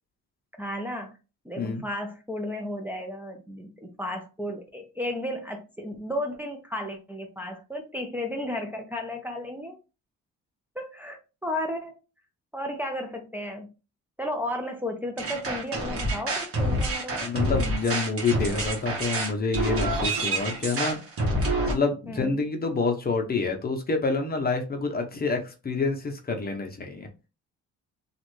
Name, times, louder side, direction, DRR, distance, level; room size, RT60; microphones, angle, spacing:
voice 1, 0.6-1.1 1.4-9.8 10.8-11.9 12.5-13.7 14.2-17.3 22.1-22.3, left 1 dB, 5° right, 2 dB, 0.6 m, -33 dB
sound 1, 15.2-21.7, right 1 dB, 50° right, 1.2 m, -27 dB
voice 2, 17.1-21.0 21.7-27.1, left 4 dB, 30° left, 4 dB, 0.7 m, -27 dB
3.1 x 2.5 x 3.1 m, 0.30 s
cardioid pair, 90°, 30 cm